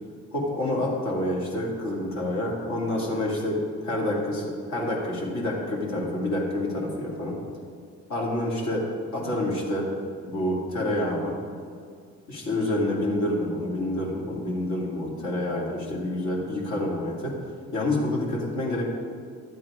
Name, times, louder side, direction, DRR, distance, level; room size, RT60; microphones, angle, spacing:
voice 1, 0.3-7.3 8.1-8.8 9.1-9.9 10.3-11.3 12.3-17.3 17.7-18.8, left 1 dB, 65° left, -4 dB, 2.6 m, -28 dB
12.0 x 7.9 x 5.0 m, 2.1 s
cardioid pair, 90°, 30 cm